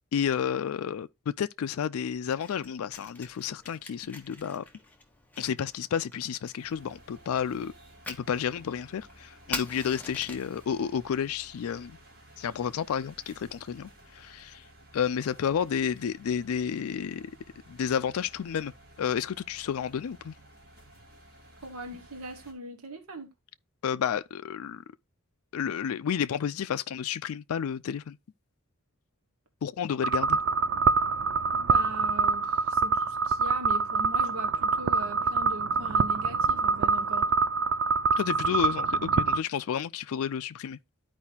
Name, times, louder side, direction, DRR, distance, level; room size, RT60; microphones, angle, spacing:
voice 1, 0.1-4.6 5.4-7.7 8.1-12.0 12.4-14.6 14.9-17.3 17.7-18.7 19.0-20.3 23.8-24.8 25.5-28.2 29.6-30.4 38.2-40.8, left 8 dB, 75° left, 0.4 m, -31 dB
Fire, 2.3-10.6, left 3 dB, 5° left, 1.0 m, -44 dB
sound 1, 6.6-22.5, right 1 dB, 40° right, 2.8 m, -54 dB
voice 2, 21.6-23.3 31.5-37.3, right 1 dB, 75° right, 1.1 m, -41 dB
sound 2, 30.0-39.4, right 5 dB, 60° right, 0.3 m, -25 dB
12.5 x 4.7 x 2.8 m
head